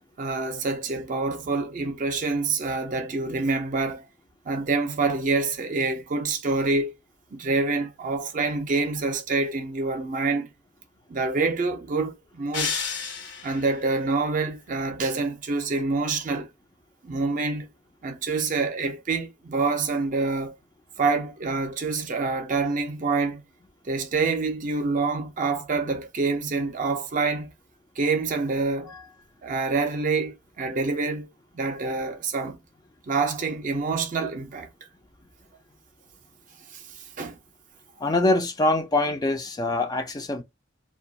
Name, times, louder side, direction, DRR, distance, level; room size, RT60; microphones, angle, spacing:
voice 1, 0.2-4.1 4.4-6.9 7.3-10.5 11.1-12.7 13.4-16.5 17.0-17.7 18.0-20.5 21.0-23.4 23.8-27.5 28.0-28.9 29.4-31.3 31.5-32.6 33.1-34.7 36.7-36.8 37.2-37.4, right 3 dB, 45° right, 0.5 m, -26 dB
sound 1, 12.5-13.8, left 5 dB, 80° left, 0.9 m, -30 dB
voice 2, 38.0-40.4, left 2 dB, 20° left, 0.3 m, -24 dB
2.2 x 2.2 x 2.6 m
head